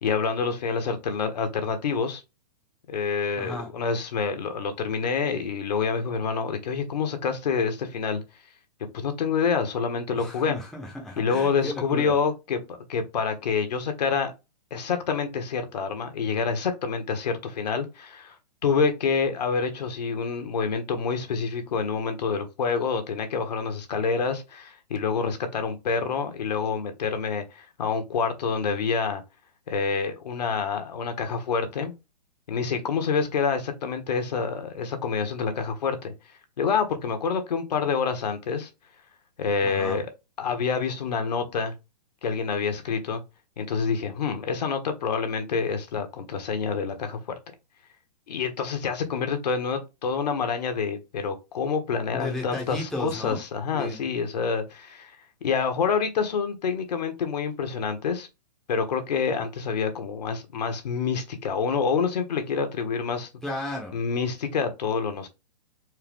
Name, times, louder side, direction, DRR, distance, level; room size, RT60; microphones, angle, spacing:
voice 1, 0.0-2.2 2.9-8.2 8.9-10.6 11.2-14.3 14.7-18.3 18.6-29.2 29.7-31.9 32.5-36.1 36.6-38.7 39.4-40.1 40.4-41.7 42.2-43.2 43.6-47.2 48.3-55.2 55.4-58.3 58.7-63.3 63.9-65.3, left 5 dB, 75° left, 1.3 m, -27 dB
voice 2, 3.4-3.7 10.2-12.1 39.6-40.0 52.1-53.4 53.7-54.0 63.4-64.0, left 1 dB, ahead, 0.7 m, -34 dB
4.6 x 2.3 x 3.5 m
hypercardioid pair, 160°, 21 cm